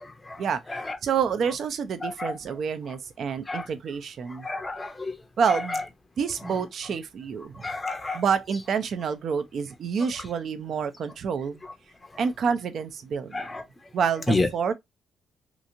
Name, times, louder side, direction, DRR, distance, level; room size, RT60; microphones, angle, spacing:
voice 1, 0.0-0.4 0.7-1.0 2.0-2.3 3.5-3.7 4.3-5.2 5.5-5.8 6.4-6.5 7.5-8.2 13.3-13.6 14.3-14.5, left 2 dB, 20° left, 0.6 m, -29 dB
voice 2, 1.0-4.5 5.4-5.8 6.2-7.6 8.1-11.6 12.2-13.5 13.9-14.7, right 6 dB, 60° right, 0.5 m, -28 dB
2.9 x 2.4 x 2.6 m
cardioid pair, 90°, 0 cm